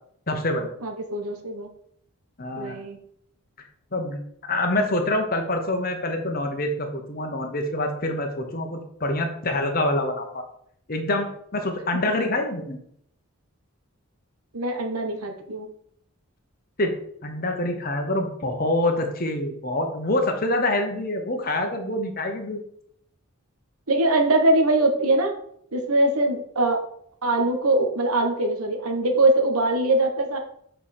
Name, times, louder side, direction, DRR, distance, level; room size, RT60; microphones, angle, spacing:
voice 1, 0.3-0.7 2.4-2.8 3.9-10.4 10.9-11.3 11.5-12.8 16.8-16.9 17.2-22.6, left 1 dB, 40° left, 3 dB, 1.0 m, -26 dB
voice 2, 0.8-1.7 2.5-3.0 14.5-15.7 23.9-25.3 25.7-26.8 27.2-30.4, right 2 dB, 85° right, 4 dB, 1.2 m, -22 dB
7.0 x 4.5 x 4.3 m, 0.68 s
head